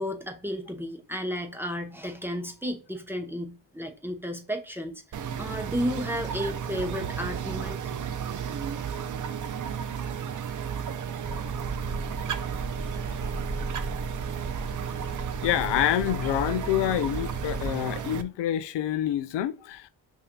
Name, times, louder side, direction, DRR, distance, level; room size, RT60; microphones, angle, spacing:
voice 1, 0.0-8.0, equal, 5° right, 0.9 m, -33 dB
sound 1, 5.1-18.2, right 7 dB, 45° right, 0.6 m, -33 dB
sound 2, 11.2-17.7, right 2 dB, 30° right, 1.7 m, -37 dB
voice 2, 15.4-19.9, left 12 dB, 80° left, 0.5 m, -27 dB
5.5 x 2.7 x 2.3 m
cardioid pair, 70°, 42 cm